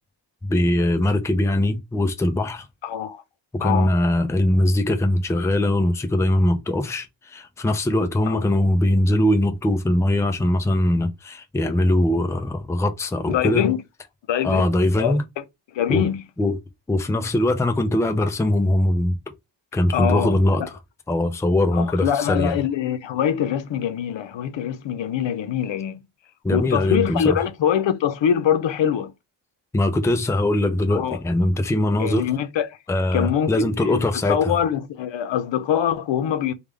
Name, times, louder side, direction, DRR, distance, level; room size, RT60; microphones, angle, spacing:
voice 1, 0.4-2.7 3.5-13.7 14.4-15.2 15.9-16.0 16.4-16.6 16.9-19.2 19.7-20.6 21.1-22.6 26.4-27.4 29.7-32.3 32.9-34.5, left 1 dB, 5° left, 0.4 m, -21 dB
voice 2, 2.8-3.2 3.6-4.0 8.3-8.4 13.3-13.8 14.3-14.7 15.0-15.4 15.7-16.2 19.9-20.7 21.7-26.0 26.5-29.1 30.9-31.2 32.0-32.8 33.1-34.0 34.3-36.5, left 9 dB, 80° left, 0.7 m, -24 dB
3.6 x 2.3 x 3.2 m
wide cardioid pair, 140°, 43 cm